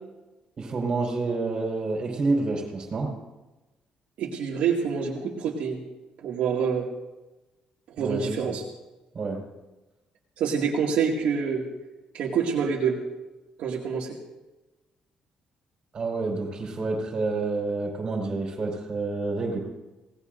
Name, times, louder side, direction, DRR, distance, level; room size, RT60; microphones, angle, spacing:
voice 1, 0.6-3.1 8.0-8.5 9.1-9.4 15.9-19.6, right 3 dB, 35° right, 0 dB, 4.6 m, -28 dB
voice 2, 4.2-5.8 6.2-6.9 8.0-8.6 10.4-11.7 12.1-13.0 13.6-14.1, right 6 dB, 70° right, -4 dB, 2.3 m, -26 dB
26.5 x 18.0 x 2.7 m, 1.1 s
cardioid pair, 165°, 2 cm